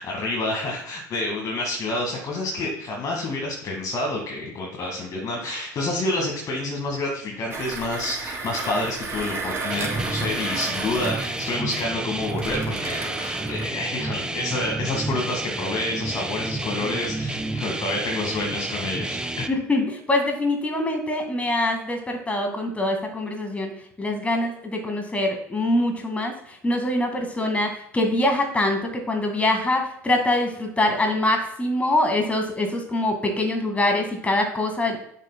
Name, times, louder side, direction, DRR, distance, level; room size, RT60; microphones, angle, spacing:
voice 1, 0.0-19.5, left 2 dB, 40° left, 0 dB, 1.8 m, -28 dB
Mechanisms, 7.5-13.7, right 4 dB, 30° right, 2.9 m, -33 dB
sound 1, 9.7-19.5, right 2 dB, 10° right, 0.6 m, -30 dB
voice 2, 19.5-35.0, left 1 dB, 15° left, 4 dB, 1.9 m, -24 dB
10.5 x 6.3 x 2.2 m, 0.71 s
figure-of-eight pair, 70°, 9 cm